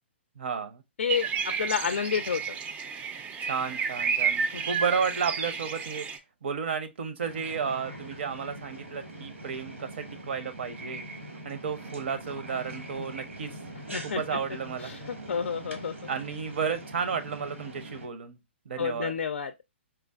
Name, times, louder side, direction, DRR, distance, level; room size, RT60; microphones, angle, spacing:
voice 1, 0.4-0.8 3.5-6.1 6.4-11.0 11.4-13.5 14.0-14.9 16.1-18.4 18.7-19.1, right 6 dB, 65° right, 0.7 m, -32 dB
sound 1, 1.1-6.2, right 6 dB, 20° right, 0.4 m, -31 dB
voice 2, 1.6-2.6 4.5-4.6 13.9-14.4 14.8-15.9 18.8-19.5, left 7 dB, 70° left, 0.4 m, -30 dB
sound 2, 7.2-18.1, right 1 dB, 90° right, 1.2 m, -42 dB
4.4 x 2.4 x 2.3 m
figure-of-eight pair, 125°, 7 cm